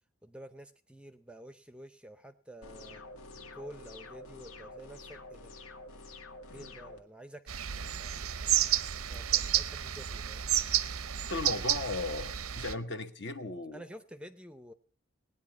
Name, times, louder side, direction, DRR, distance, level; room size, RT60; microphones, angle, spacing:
voice 1, 0.2-3.0 3.5-5.5 6.5-7.5 7.9-8.6 9.0-10.5 13.7-14.7, right 1 dB, 5° right, 11 dB, 0.6 m, -50 dB
sound 1, 2.6-7.0, left 2 dB, 80° left, 1.8 m, -48 dB
sound 2, 7.5-12.7, right 11 dB, 90° right, 0.7 m, -31 dB
voice 2, 11.3-13.8, left 2 dB, 55° left, 9 dB, 1.1 m, -37 dB
18.5 x 9.8 x 5.9 m, 0.43 s
head